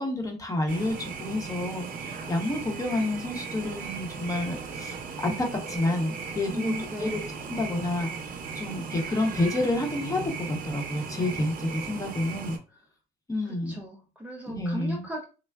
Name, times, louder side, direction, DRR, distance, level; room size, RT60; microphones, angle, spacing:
voice 1, 0.0-5.0 5.2-6.7 7.0-7.2 7.5-8.1 8.5-12.6 13.3-13.8 14.5-15.1, left 1 dB, 20° left, 3 dB, 0.7 m, -29 dB
sound 1, 0.7-12.6, right 5 dB, 55° right, 0.6 m, -37 dB
voice 2, 6.5-7.2 13.4-15.2, equal, 10° right, 0 dB, 0.4 m, -36 dB
3.4 x 2.1 x 2.3 m, 0.33 s
cardioid pair, 110°, 17 cm